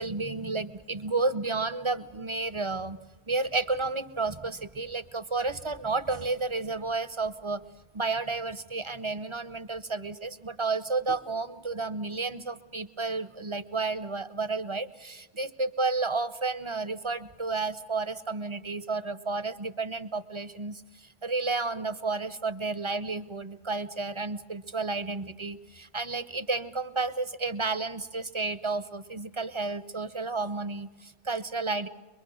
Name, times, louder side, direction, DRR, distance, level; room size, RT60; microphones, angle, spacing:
voice 1, 0.0-3.0 3.3-7.6 7.9-31.9, right 3 dB, 30° right, 12 dB, 0.7 m, -31 dB
24.0 x 22.5 x 6.4 m, 1.3 s
omnidirectional pair, 1.2 m